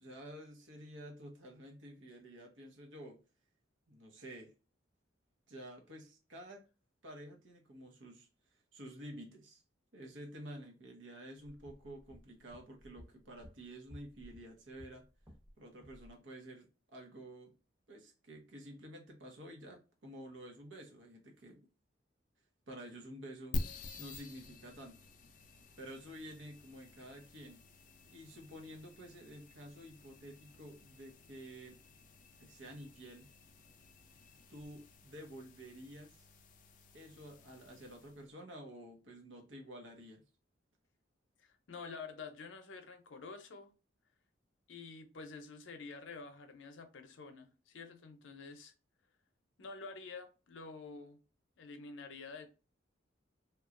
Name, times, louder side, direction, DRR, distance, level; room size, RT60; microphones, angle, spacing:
voice 1, 0.0-3.2 3.9-4.5 5.5-6.7 7.0-8.3 8.7-9.6 9.9-15.0 15.6-17.5 17.9-21.7 22.7-23.6 24.0-25.0 25.8-27.6 28.0-31.8 32.4-33.3 34.5-36.2 36.9-40.2, right 1 dB, 85° right, 0.8 m, -50 dB
sound 1, 11.5-15.5 15.8-16.1, equal, 20° right, 0.8 m, -57 dB
sound 2, 23.5-38.2, left 2 dB, 45° left, 0.3 m, -48 dB
voice 2, 41.4-43.7 44.7-48.7 49.6-51.2 51.6-52.5, left 4 dB, 90° left, 0.6 m, -48 dB
2.9 x 2.3 x 2.4 m
head